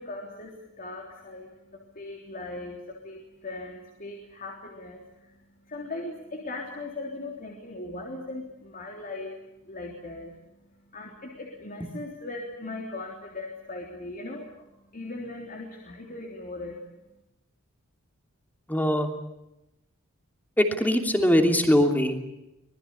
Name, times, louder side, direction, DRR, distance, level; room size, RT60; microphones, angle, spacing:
voice 1, 0.0-5.4 5.6-9.4 9.6-10.4 10.9-16.8, left 2 dB, 40° left, 0 dB, 3.5 m, -39 dB
voice 2, 18.7-19.1 20.6-22.3, equal, 10° left, 4 dB, 3.0 m, -22 dB
25.0 x 20.0 x 8.6 m, 0.90 s
head